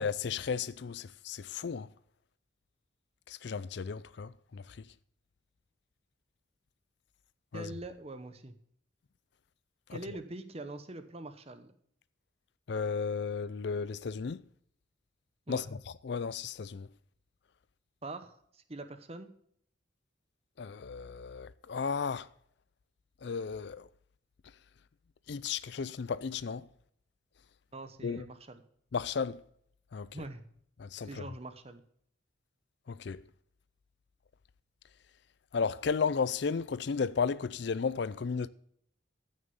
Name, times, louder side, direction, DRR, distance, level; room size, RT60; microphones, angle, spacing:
voice 1, 0.0-1.9 3.3-4.9 7.5-7.7 9.9-10.0 12.7-14.4 15.5-15.7 16.0-16.9 20.6-22.3 23.2-23.9 25.3-26.7 28.0-28.3 28.9-29.4 29.9-30.1 30.8-31.3 32.9-33.2 35.5-38.5, left 5 dB, 55° left, 0.4 m, -34 dB
voice 2, 7.5-8.6 9.9-11.7 15.5-15.6 18.0-19.3 27.7-28.6 30.1-30.4 31.0-31.8, right 2 dB, 30° right, 0.9 m, -44 dB
15.0 x 6.6 x 5.4 m
head